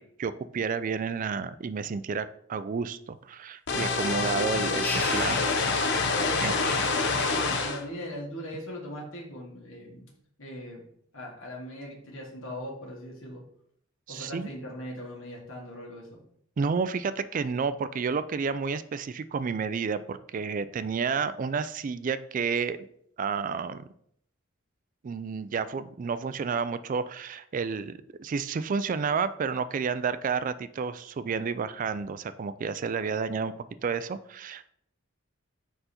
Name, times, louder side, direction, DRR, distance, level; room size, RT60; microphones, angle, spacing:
voice 1, 0.2-5.5 6.4-6.5 14.1-14.5 16.6-22.8 23.2-23.9 25.0-33.5 33.8-34.7, right 5 dB, 40° right, 14 dB, 0.3 m, -30 dB
sound 1, 3.7-7.8, left 4 dB, 60° left, 0.8 m, -26 dB
sound 2, 4.8-6.1 6.6-7.8, left 1 dB, 10° left, 0.7 m, -38 dB
voice 2, 6.1-10.1 10.4-10.8 11.1-13.4 14.1-16.2, equal, 90° left, -3 dB, 1.7 m, -40 dB
5.0 x 4.5 x 4.3 m, 0.68 s
head